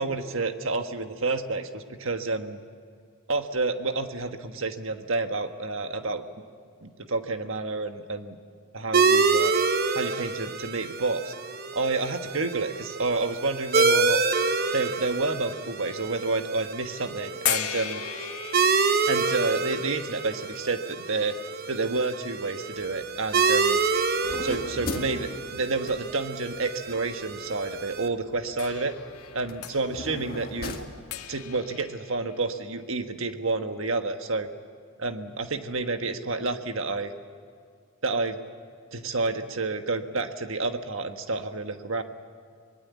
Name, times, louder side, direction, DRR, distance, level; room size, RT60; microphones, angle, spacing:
voice 1, 0.0-2.6 3.3-6.2 6.8-8.4 8.7-9.5 9.9-11.3 11.7-14.2 14.7-18.3 19.1-21.3 21.7-23.8 24.4-28.9 29.3-30.8 31.3-34.5 35.0-37.1 38.0-38.4 38.9-42.0, right 3 dB, 65° right, 7 dB, 1.5 m, -29 dB
sound 1, 8.9-28.1, right 4 dB, 45° right, 1.0 m, -27 dB
sound 2, 17.5-22.5 23.4-23.5 28.6-32.9, left 11 dB, 85° left, 1.5 m, -37 dB
sound 3, 22.7-31.6, left 2 dB, 45° left, 1.7 m, -41 dB
24.0 x 20.5 x 8.4 m, 2.2 s
head